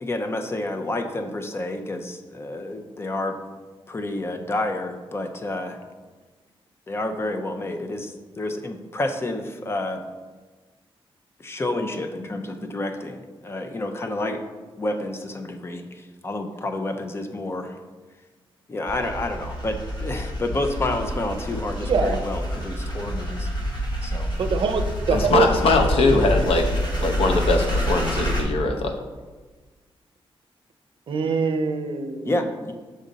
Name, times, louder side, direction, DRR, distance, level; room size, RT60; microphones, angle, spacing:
voice 1, 0.0-3.4 3.9-5.8 6.9-10.0 11.4-14.4 14.8-17.8 18.7-23.5 24.0-24.3 32.2-32.7, left 2 dB, 25° left, 6 dB, 0.6 m, -29 dB
sound 1, 18.9-28.4, equal, 50° left, 1.2 m, -27 dB
voice 2, 21.8-22.2 24.4-25.5 26.3-26.4 31.1-32.3, right 5 dB, 60° right, 6 dB, 0.6 m, -24 dB
voice 3, 25.1-26.6 27.0-29.0, left 3 dB, 85° left, 4 dB, 0.8 m, -21 dB
6.4 x 5.1 x 4.0 m, 1.3 s
wide cardioid pair, 150°, 10 cm